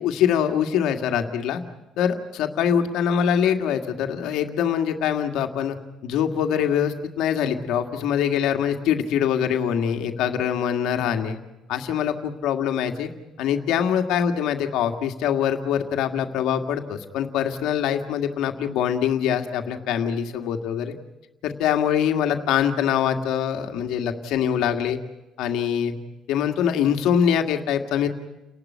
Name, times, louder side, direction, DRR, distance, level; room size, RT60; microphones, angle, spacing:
voice 1, 0.0-1.6 2.0-5.8 6.0-11.4 11.7-13.1 13.4-20.9 21.4-25.0 25.4-26.0 26.3-28.1, left 8 dB, 75° left, 5 dB, 1.9 m, -23 dB
30.0 x 12.0 x 9.4 m, 1.0 s
cardioid pair, 140°, 0 cm